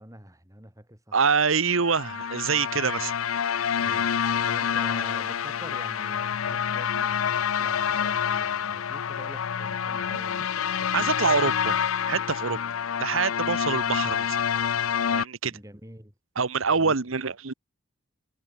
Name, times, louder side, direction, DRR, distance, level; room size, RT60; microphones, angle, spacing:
voice 1, 0.0-1.2 3.8-4.1 4.4-11.2 11.4-11.8 15.5-16.1 16.7-17.0, right 1 dB, 15° right, 7.7 m, -46 dB
voice 2, 1.1-3.1 10.9-11.8 12.1-12.6 13.0-14.4 15.1-15.5 16.4-17.5, right 5 dB, 70° right, 1.1 m, -25 dB
sound 1, 1.7-15.2, left 8 dB, 90° left, 0.6 m, -27 dB
head